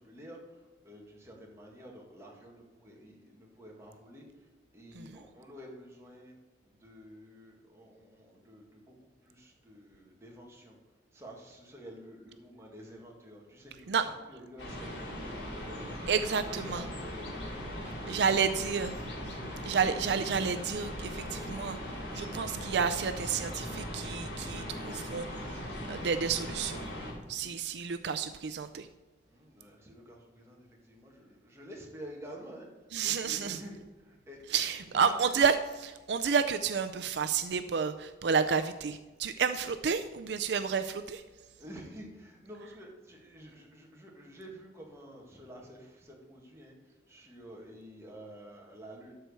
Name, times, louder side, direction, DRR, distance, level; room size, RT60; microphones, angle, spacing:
voice 1, 0.0-4.2 4.7-6.4 6.6-10.8 11.1-18.5 27.3-27.6 29.3-35.3 41.6-49.2, equal, 15° right, -2 dB, 1.9 m, -50 dB
sound 1, 14.6-27.1, equal, 75° left, 2.6 m, -39 dB
voice 2, 16.1-16.8 18.1-19.0 19.6-21.8 22.1-25.3 25.9-26.9 27.3-28.9 32.9-33.6 34.5-41.2, right 6 dB, 70° right, 10 dB, 0.4 m, -30 dB
12.5 x 4.5 x 6.8 m, 1.1 s
head